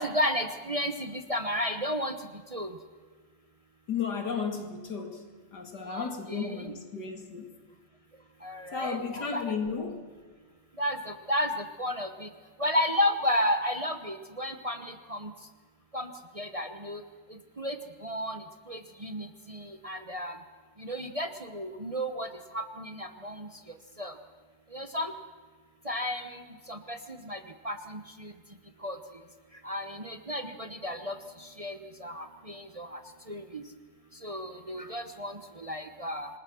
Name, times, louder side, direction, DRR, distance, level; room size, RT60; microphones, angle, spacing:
voice 1, 0.0-2.2 2.5-2.7 5.9-6.5 8.4-9.4 10.8-11.5 11.8-12.3 12.6-15.3 15.9-16.1 16.4-17.0 17.6-17.8 18.0-18.4 18.7-20.3 20.8-22.3 22.5-23.5 24.0-24.1 24.7-25.1 25.9-26.4 26.7-27.0 27.3-27.4 27.6-28.3 28.8-29.0 29.6-31.1 31.6-33.0 33.3-33.6 34.2-36.3, equal, 25° right, 7 dB, 1.0 m, -32 dB
voice 2, 3.9-5.2 5.5-7.5 8.7-10.0, left 5 dB, 90° left, 4 dB, 3.0 m, -34 dB
27.0 x 20.0 x 6.3 m, 1.5 s
omnidirectional pair, 1.7 m